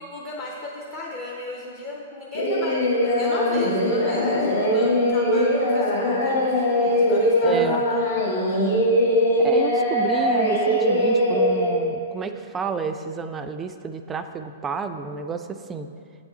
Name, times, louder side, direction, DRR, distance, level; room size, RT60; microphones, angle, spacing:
voice 1, 0.1-8.7, left 3 dB, 35° left, -3 dB, 0.7 m, -35 dB
Singing, 2.3-11.8, equal, 80° left, 1.2 m, -21 dB
voice 2, 7.4-7.8 9.4-15.9, right 5 dB, 20° right, 8 dB, 0.3 m, -30 dB
8.3 x 3.5 x 4.1 m, 2.3 s
figure-of-eight pair, 110°, 0 cm